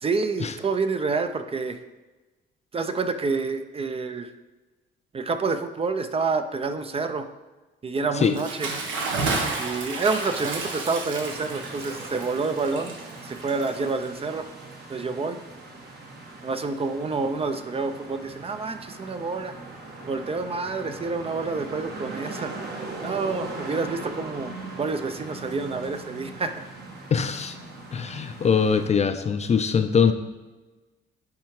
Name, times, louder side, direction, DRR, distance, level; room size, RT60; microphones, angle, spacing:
voice 1, 0.0-1.8 2.7-4.3 5.1-7.3 7.8-8.7 9.6-13.0 13.2-14.5 14.9-15.4 16.4-19.5 20.1-22.5 23.0-26.5, right 4 dB, 30° right, 8 dB, 0.5 m, -28 dB
Bathtub (filling or washing) / Splash splatter, 8.2-14.2, right 3 dB, 75° right, 1.1 m, -31 dB
sound 1, 11.2-28.9, right 2 dB, 55° right, 1.3 m, -40 dB
voice 2, 27.1-27.6 27.9-30.1, left 6 dB, 35° left, 9 dB, 0.4 m, -22 dB
10.0 x 3.4 x 3.1 m, 1.2 s
cardioid pair, 90°, 20 cm